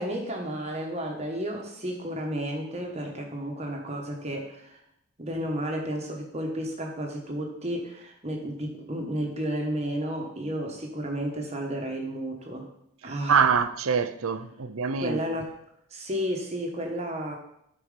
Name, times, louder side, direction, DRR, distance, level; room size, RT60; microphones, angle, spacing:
voice 1, 0.0-4.8 5.2-12.7 13.0-13.4 15.0-15.5 15.9-17.4, equal, 30° right, 1.3 m, -32 dB
voice 2, 13.0-15.2, right 6 dB, 80° right, 0.6 m, -25 dB
13.0 x 4.7 x 5.1 m
head